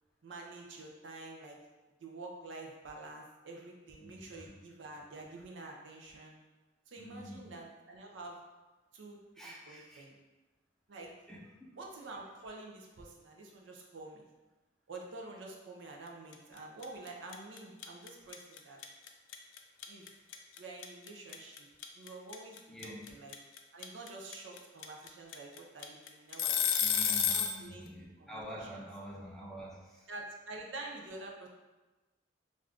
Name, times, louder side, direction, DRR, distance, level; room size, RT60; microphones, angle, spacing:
voice 1, 0.2-1.6 2.0-6.4 6.9-8.4 8.9-10.1 10.9-11.1 11.8-14.3 14.9-18.8 19.9-20.1 20.6-21.7 21.9-23.4 23.7-26.9 27.2-27.9 28.2-28.9 30.1-31.5, right 2 dB, 70° right, 0 dB, 0.5 m, -48 dB
voice 2, 4.0-4.5 7.0-7.4 9.4-10.0 11.3-11.4 22.7-23.0 26.8-30.1, equal, ahead, -4 dB, 0.5 m, -47 dB
sound 1, 16.3-16.6 16.8-27.6, left 7 dB, 85° left, 0.3 m, -31 dB
2.5 x 2.3 x 3.4 m, 1.2 s
head